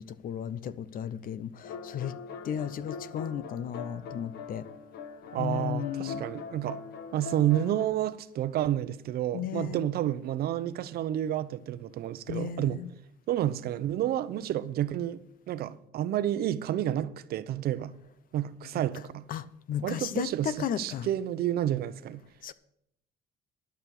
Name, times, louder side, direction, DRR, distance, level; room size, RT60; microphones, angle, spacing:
voice 1, 0.0-2.1 2.4-4.7 5.4-6.2 9.3-9.8 12.3-12.9 18.7-18.8 19.3-21.1 22.4-22.5, left 9 dB, 55° left, 0.7 m, -34 dB
sound 1, 1.6-7.9, left 5 dB, 70° left, 1.3 m, -42 dB
voice 2, 5.3-6.8 7.1-12.8 13.3-15.2 15.5-17.9 18.3-19.2 19.8-22.2, right 12 dB, 65° right, 0.8 m, -30 dB
11.5 x 6.3 x 8.3 m
cardioid pair, 110°, 17 cm